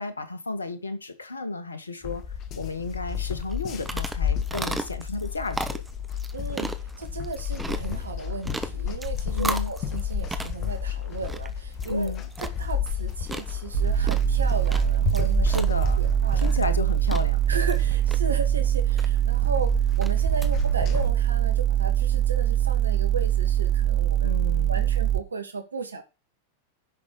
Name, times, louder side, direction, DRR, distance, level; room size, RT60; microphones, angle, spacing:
voice 1, 0.0-2.2 2.5-5.8 9.3-9.7 11.9-12.2 15.4-16.0 16.3-17.4 24.2-24.9, left 2 dB, 75° left, 1.8 m, -32 dB
sound 1, 2.0-21.1, left 8 dB, 35° left, 1.8 m, -32 dB
sound 2, 3.4-20.5, right 2 dB, 5° right, 1.2 m, -37 dB
voice 2, 6.3-12.1 12.6-15.6 16.0-16.5 17.5-19.7 20.0-24.4 24.7-26.0, right 4 dB, 75° right, 2.2 m, -35 dB
sound 3, 13.7-25.2, right 11 dB, 35° right, 1.1 m, -23 dB
10.5 x 6.2 x 6.4 m
figure-of-eight pair, 90°, 0 cm